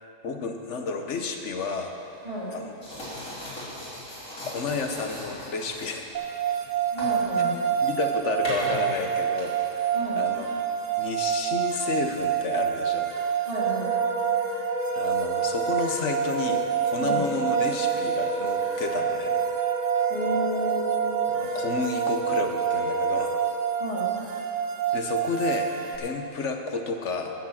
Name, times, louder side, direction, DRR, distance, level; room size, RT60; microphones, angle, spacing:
voice 1, 0.0-1.9 2.5-2.7 4.5-6.1 7.8-10.5 11.0-13.1 14.9-19.4 21.3-23.4 24.9-25.7 26.0-27.3, left 4 dB, 65° left, 4 dB, 1.3 m, -31 dB
sound 1, 1.8-11.0, left 1 dB, 85° left, 3.6 m, -40 dB
voice 2, 2.2-2.5 6.9-7.6 9.9-10.2 13.4-13.9 17.0-17.2 20.1-21.1 23.8-24.1, equal, 30° right, -7 dB, 3.2 m, -32 dB
sound 2, 6.1-26.0, right 9 dB, 80° right, 1.4 m, -27 dB
Wind instrument woodwind instrument, 13.5-23.6, right 1 dB, 30° left, 3.9 m, -32 dB
13.5 x 7.2 x 7.3 m, 2.7 s
omnidirectional pair, 1.3 m